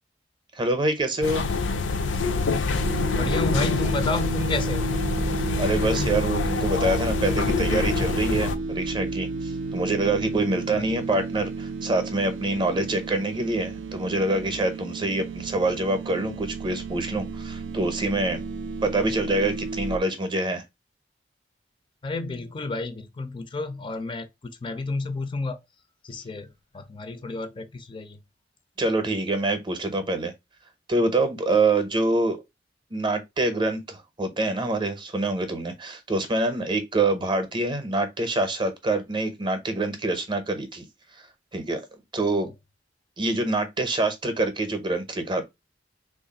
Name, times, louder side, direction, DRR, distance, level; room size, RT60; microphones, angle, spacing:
voice 1, 0.5-1.4 5.6-18.4 18.8-20.6 28.8-30.3 30.9-32.4 32.9-40.9 41.5-41.8 42.1-42.5 43.2-45.4, right 2 dB, 25° right, 0.6 m, -26 dB
sound 1, 1.2-8.6, left 4 dB, 85° left, 0.5 m, -26 dB
sound 2, 2.8-20.0, right 3 dB, 80° right, 0.4 m, -32 dB
voice 2, 3.2-4.9 22.0-25.6 26.0-28.2, left 3 dB, 30° left, 0.4 m, -31 dB
3.0 x 2.4 x 3.9 m
head